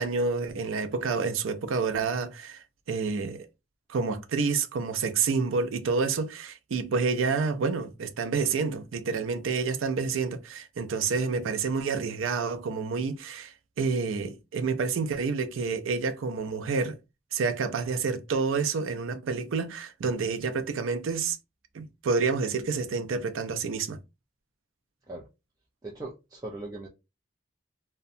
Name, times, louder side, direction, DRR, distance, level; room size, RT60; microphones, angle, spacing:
voice 1, 0.0-3.5 3.9-17.0 17.3-21.4 21.7-24.0, right 4 dB, 85° right, 0.4 m, -29 dB
voice 2, 25.8-26.9, right 2 dB, 20° right, 0.4 m, -39 dB
2.7 x 2.1 x 2.5 m
head